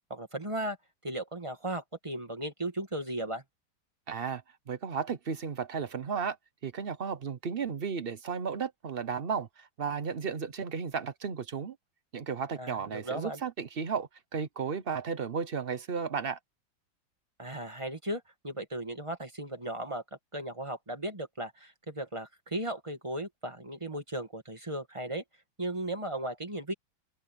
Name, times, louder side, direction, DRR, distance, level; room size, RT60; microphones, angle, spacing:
voice 1, 0.1-0.8 1.0-3.4 12.6-13.4 17.4-20.0 20.3-25.2 25.6-26.7, right 1 dB, 15° right, 1.9 m, -36 dB
voice 2, 4.1-4.4 4.7-6.4 6.6-11.8 12.1-16.4, right 6 dB, 50° right, 0.7 m, -34 dB
open air
omnidirectional pair, 2.2 m